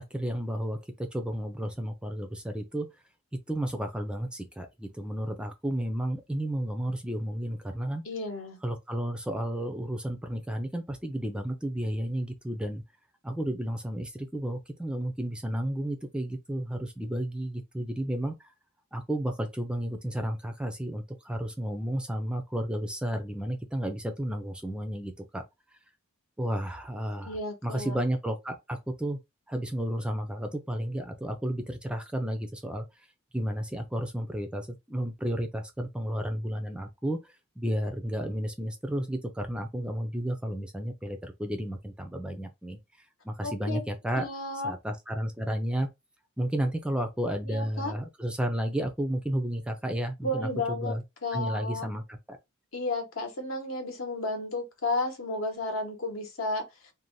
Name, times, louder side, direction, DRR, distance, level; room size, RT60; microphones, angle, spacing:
voice 1, 0.0-2.9 3.5-8.0 8.6-12.8 13.2-18.5 18.9-25.4 26.4-27.4 27.6-29.2 29.5-32.8 33.3-37.2 37.6-42.8 43.2-44.3 44.6-45.9 46.4-51.0 51.3-52.4, right 1 dB, 5° right, 0.3 m, -32 dB
voice 2, 8.0-8.6 27.2-28.0 43.4-43.8 44.2-44.8 47.4-47.9 50.2-51.9 52.7-56.6, left 2 dB, 70° left, 0.8 m, -33 dB
2.6 x 2.1 x 3.0 m
head